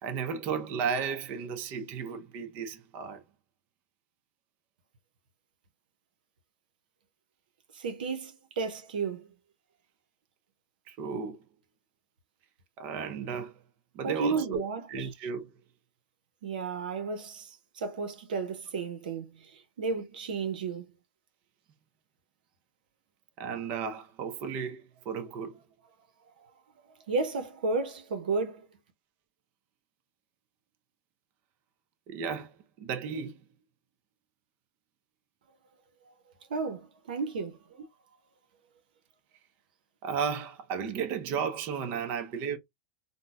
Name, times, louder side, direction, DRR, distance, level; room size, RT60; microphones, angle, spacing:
voice 1, 0.0-3.2 10.9-11.4 12.8-13.7 13.9-14.6 14.9-15.5 23.4-25.6 32.1-33.4 40.0-42.6, right 6 dB, 45° right, 0.8 m, -34 dB
voice 2, 7.7-9.3 14.0-15.1 16.4-20.9 27.1-28.7 36.1-36.2 36.5-37.6, right 4 dB, 85° right, 0.8 m, -33 dB
3.8 x 2.2 x 2.4 m
supercardioid pair, 135°, 5 cm